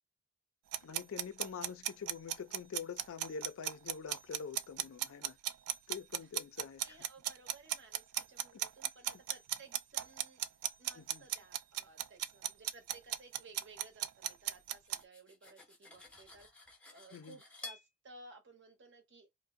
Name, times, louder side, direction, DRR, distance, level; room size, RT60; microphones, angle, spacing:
sound 1, 0.7-15.0, right 12 dB, 80° right, 0.3 m, -36 dB
voice 1, 0.8-5.4 5.9-7.0 8.5-8.6 9.1-9.2 11.0-11.3 17.1-17.4, left 6 dB, 65° left, 0.4 m, -45 dB
voice 2, 6.8-10.4 10.8-19.3, right 3 dB, 50° right, 0.8 m, -58 dB
Cutlery silverware, 14.7-17.9, left 3 dB, 5° left, 0.5 m, -52 dB
2.6 x 2.0 x 3.5 m
head